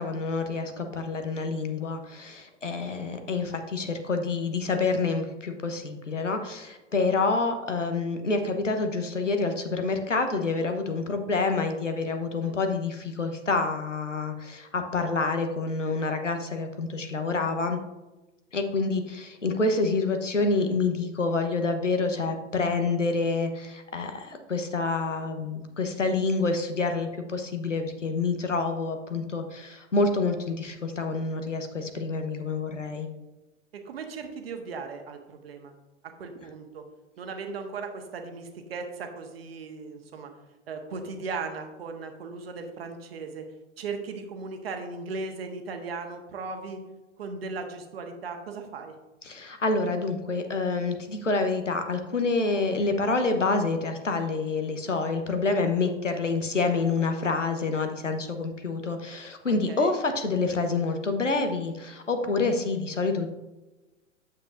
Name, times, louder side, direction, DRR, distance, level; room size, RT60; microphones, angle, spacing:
voice 1, 0.0-17.8 18.5-33.1 49.2-63.3, left 3 dB, 80° left, 6 dB, 1.1 m, -27 dB
voice 2, 33.7-35.7 36.0-36.8 37.2-40.3 40.7-43.5 43.8-46.8 47.2-48.9 59.7-59.9, right 4 dB, 55° right, 5 dB, 1.3 m, -37 dB
8.6 x 7.5 x 2.6 m, 1.1 s
figure-of-eight pair, 105°, 37 cm